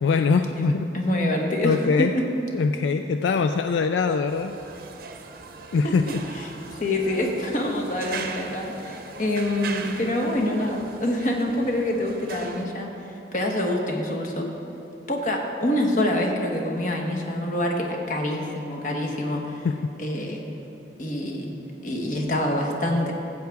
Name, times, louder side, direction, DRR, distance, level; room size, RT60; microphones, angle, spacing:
voice 1, 0.0-0.9 1.6-2.1 2.5-4.5 5.7-6.2 19.6-19.8, left 4 dB, 80° left, 8 dB, 0.3 m, -22 dB
voice 2, 0.6-2.2 5.8-5.9 6.7-14.5 15.1-19.7 20.0-20.4 21.0-21.5 21.8-23.1, left 1 dB, 45° left, 1 dB, 1.1 m, -26 dB
sound 1, 4.3-12.7, right 4 dB, 50° right, 0.7 m, -39 dB
15.0 x 8.0 x 3.5 m, 2.8 s
head